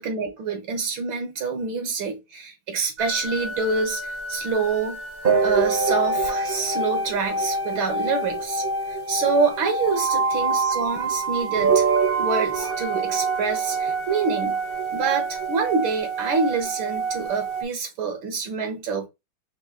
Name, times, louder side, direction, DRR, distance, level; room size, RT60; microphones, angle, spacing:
voice 1, 0.0-5.0 5.4-11.9 12.2-14.6 14.9-19.1, right 5 dB, 75° right, 1.9 m, -26 dB
sound 1, 3.0-17.6, right 4 dB, 40° right, 0.8 m, -25 dB
5.8 x 2.4 x 3.6 m
omnidirectional pair, 2.2 m